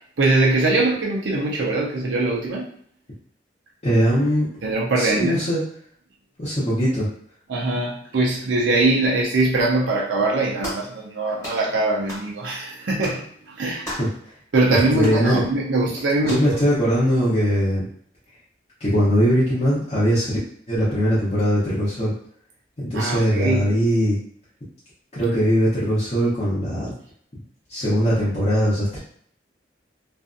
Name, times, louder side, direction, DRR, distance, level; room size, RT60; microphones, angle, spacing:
voice 1, 0.2-2.7 4.6-5.5 7.5-13.8 14.5-16.6 22.9-23.7, right 2 dB, 85° right, -3 dB, 0.5 m, -22 dB
voice 2, 3.8-4.5 5.0-5.6 6.4-7.1 14.0-14.1 14.9-15.4 16.2-17.8 18.8-20.4 20.7-22.1 22.8-24.2 25.1-26.9 27.7-29.0, equal, 35° left, -10 dB, 0.8 m, -20 dB
sound 1, 10.6-10.9 11.4-11.6 12.1-12.3 13.0-13.2 13.8-14.2 15.0-15.2 16.2-16.5, equal, 15° left, 1.2 m, -34 dB
2.5 x 2.3 x 2.5 m, 0.63 s
head